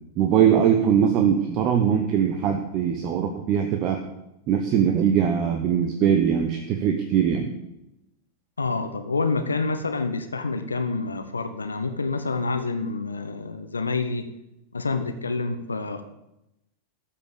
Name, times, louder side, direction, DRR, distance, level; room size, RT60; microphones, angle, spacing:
voice 1, 0.2-4.0 4.5-7.5, right 8 dB, 40° right, 5 dB, 1.1 m, -21 dB
voice 2, 8.6-14.3 14.7-16.0, left 3 dB, 75° left, 8 dB, 0.9 m, -27 dB
13.0 x 5.9 x 7.0 m, 0.88 s
figure-of-eight pair, 90°, 0 cm